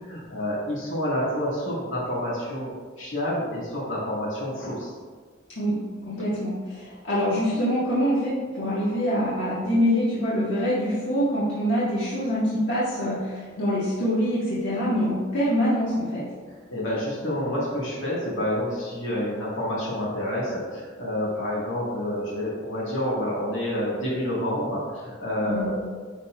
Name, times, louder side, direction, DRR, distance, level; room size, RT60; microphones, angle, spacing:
voice 1, 0.0-4.9 16.5-25.8, left 1 dB, 85° left, -6 dB, 1.9 m, -28 dB
voice 2, 6.0-16.2 25.4-25.7, equal, 70° left, -10 dB, 1.7 m, -25 dB
11.0 x 4.2 x 2.4 m, 1.5 s
head